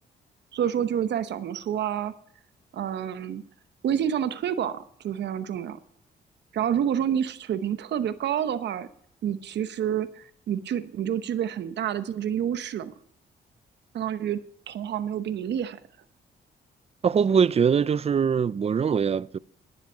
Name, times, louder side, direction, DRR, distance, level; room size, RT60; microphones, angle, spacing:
voice 1, 0.5-2.1 2.7-3.4 3.8-5.8 6.5-8.9 9.2-12.9 13.9-14.4 14.7-15.8, right 9 dB, 75° right, 1.0 m, -28 dB
voice 2, 17.0-19.4, right 6 dB, 35° right, 0.5 m, -22 dB
10.5 x 10.5 x 5.6 m
cardioid pair, 70°, 18 cm